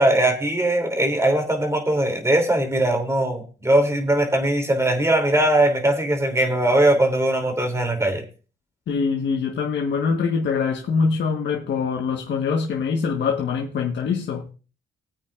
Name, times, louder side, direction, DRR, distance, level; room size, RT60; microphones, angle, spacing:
voice 1, 0.0-8.2, right 1 dB, 15° right, 3.1 m, -20 dB
voice 2, 8.9-14.4, left 5 dB, 65° left, 1.4 m, -24 dB
20.5 x 8.7 x 2.5 m
cardioid pair, 90°, 20 cm